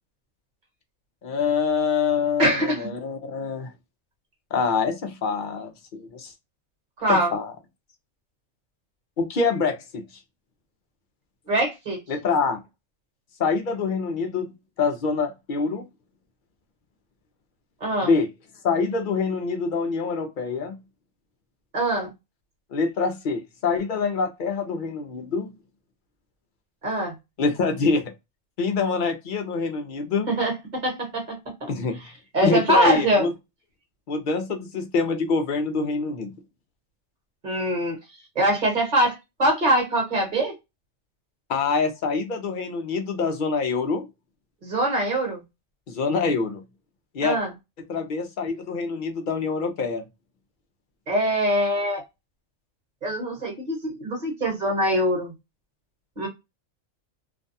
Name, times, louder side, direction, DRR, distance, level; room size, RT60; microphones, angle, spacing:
voice 1, 1.2-3.7 4.5-6.3 7.1-7.5 9.2-10.0 12.1-12.6 13.4-15.8 18.0-18.3 18.6-20.7 22.7-25.5 27.4-28.1 28.6-30.3 31.7-32.0 32.4-33.3 34.1-36.3 41.5-44.1 45.9-46.6 47.1-47.4 47.9-50.0, left 4 dB, 55° left, 0.6 m, -25 dB
voice 2, 2.4-2.9 7.0-7.3 11.5-12.0 17.8-18.1 21.7-22.1 26.8-27.1 30.3-31.7 32.3-33.3 37.4-38.0 38.3-40.5 44.6-45.4 47.2-47.5 51.1-52.0 53.0-55.3 56.2-56.3, right 1 dB, 40° right, 1.2 m, -23 dB
2.6 x 2.2 x 2.6 m
omnidirectional pair, 1.3 m